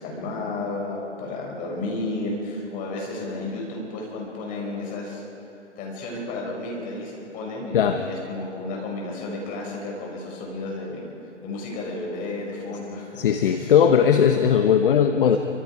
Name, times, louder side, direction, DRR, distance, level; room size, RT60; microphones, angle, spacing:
voice 1, 0.0-5.2 5.8-11.1 11.4-13.7 15.3-15.4, left 2 dB, 20° left, -2 dB, 6.0 m, -32 dB
voice 2, 13.2-15.4, left 8 dB, 45° left, 7 dB, 1.2 m, -18 dB
28.0 x 25.5 x 4.9 m, 2.7 s
figure-of-eight pair, 130°, 36 cm